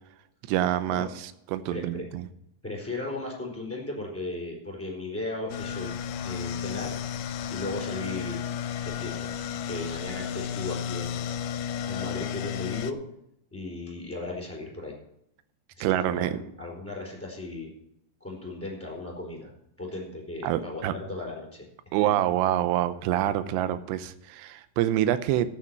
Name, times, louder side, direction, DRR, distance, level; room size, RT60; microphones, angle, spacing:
voice 1, 0.5-2.2 15.8-16.4 20.4-20.9 21.9-25.5, right 12 dB, 85° right, 13 dB, 2.9 m, -26 dB
voice 2, 1.7-2.0 2.6-5.9 6.2-7.0 7.5-8.5 8.8-9.3 9.6-11.3 11.6-13.0 13.5-14.9 15.7-17.7 18.2-19.5 19.8-21.7 22.0-22.1, left 2 dB, 5° left, -1 dB, 4.0 m, -36 dB
sound 1, 5.5-12.9, left 8 dB, 75° left, 2.4 m, -33 dB
13.0 x 8.8 x 5.9 m, 0.77 s
omnidirectional pair, 4.9 m